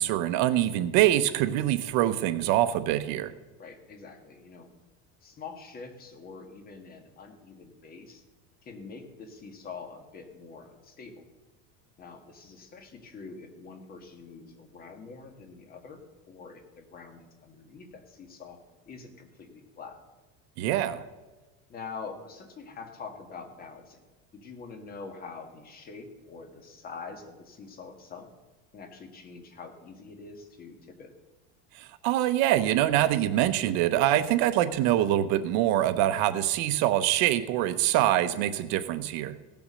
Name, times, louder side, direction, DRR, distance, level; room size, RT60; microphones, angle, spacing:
voice 1, 0.0-3.3 20.6-21.0 31.7-39.3, right 13 dB, 60° right, 12 dB, 0.8 m, -24 dB
voice 2, 3.6-4.7 5.2-8.2 8.6-11.2 12.0-16.0 16.3-18.6 18.9-20.0 21.7-24.0 24.3-28.3 28.7-31.1, left 4 dB, 30° left, 5 dB, 1.7 m, -45 dB
16.5 x 7.0 x 6.3 m, 1.2 s
cardioid pair, 150°, 31 cm